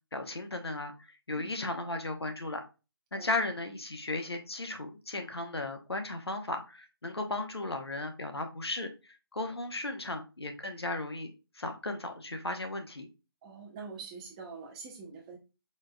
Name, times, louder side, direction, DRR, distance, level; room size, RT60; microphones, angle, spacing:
voice 1, 0.1-2.6 3.1-8.9 9.3-11.3 11.5-13.1, left 2 dB, 90° left, 5 dB, 0.9 m, -35 dB
voice 2, 13.4-15.4, right 5 dB, 15° right, -1 dB, 0.8 m, -45 dB
4.3 x 3.6 x 2.2 m, 0.30 s
figure-of-eight pair, 155°, 13 cm